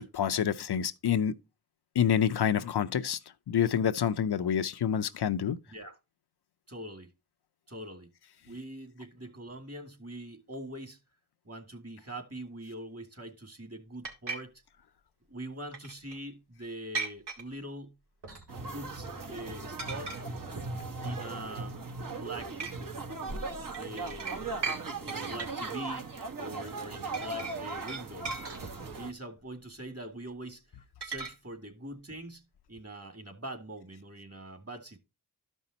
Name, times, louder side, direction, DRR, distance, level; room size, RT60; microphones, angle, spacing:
voice 1, 0.0-1.3 2.0-3.2 3.5-5.6, left 8 dB, 75° left, 0.7 m, -27 dB
voice 2, 6.7-7.1 7.7-8.1 8.4-11.0 11.4-14.5 15.3-17.9 18.6-20.2 21.0-21.8 22.1-22.7 23.8-24.5 25.0-26.1 26.4-28.3 28.9-30.6 31.0-32.4 32.7-35.0, right 1 dB, 35° right, 2.5 m, -43 dB
sound 1, 14.0-14.4 15.7-16.2 16.9-17.4 18.2-18.7 19.0-19.3 19.8-20.2 20.6-20.8 21.4-21.9 22.6-22.7 23.3-24.8 25.1-25.6 26.7-26.8 27.1-29.0 31.0-31.3, right 4 dB, 80° right, 2.5 m, -38 dB
sound 2, 18.5-29.1, right 3 dB, 55° right, 1.5 m, -38 dB
13.0 x 5.5 x 2.9 m
cardioid pair, 45°, 40 cm